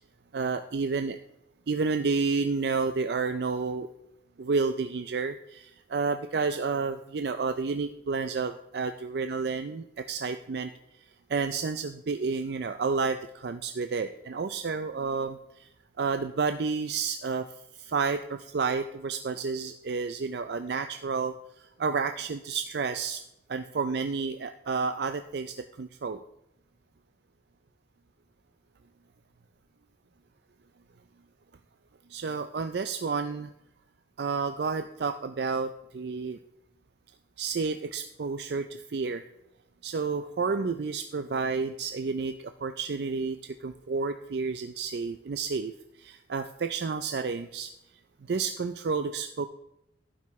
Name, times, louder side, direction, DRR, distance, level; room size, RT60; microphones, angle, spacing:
voice 1, 0.3-1.2 1.7-3.9 4.4-10.7 11.3-15.7 16.0-17.5 17.8-23.2 23.5-26.2 32.1-33.5 34.2-36.4 37.4-39.2 39.8-45.7 46.0-47.7 48.2-49.5, right 4 dB, 65° right, 9 dB, 0.4 m, -30 dB
12.0 x 9.4 x 3.1 m, 0.86 s
head